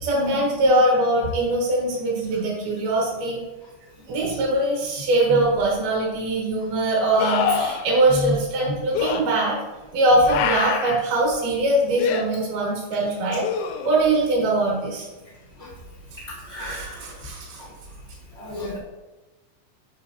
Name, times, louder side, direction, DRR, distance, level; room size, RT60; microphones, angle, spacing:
voice 1, 0.0-3.4 4.1-9.6 9.9-13.4 13.8-15.1 16.6-17.6, right 1 dB, 65° right, -3 dB, 3.0 m, -22 dB
sound 1, 5.6-5.7 7.2-7.8 8.9-9.2 10.3-11.0 12.0-12.2 13.4-14.1 17.2-17.3, left 7 dB, 90° left, 2.4 m, -25 dB
voice 2, 16.5-16.9 18.4-18.8, left 1 dB, 35° right, -6 dB, 1.0 m, -30 dB
8.0 x 5.8 x 2.6 m, 1.1 s
omnidirectional pair, 4.1 m